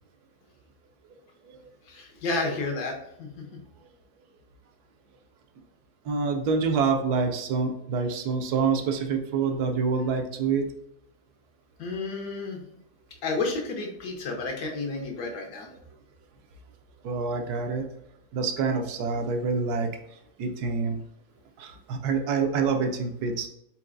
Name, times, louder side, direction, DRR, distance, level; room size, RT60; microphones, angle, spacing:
voice 1, 1.9-3.4 11.8-12.6 13.2-15.7, left 3 dB, 85° left, 2 dB, 1.4 m, -31 dB
voice 2, 6.0-10.7 17.0-17.9 18.3-19.9 20.4-21.0 21.6-23.5, right 5 dB, 80° right, 5 dB, 1.1 m, -26 dB
4.5 x 3.8 x 2.5 m, 0.77 s
omnidirectional pair, 1.7 m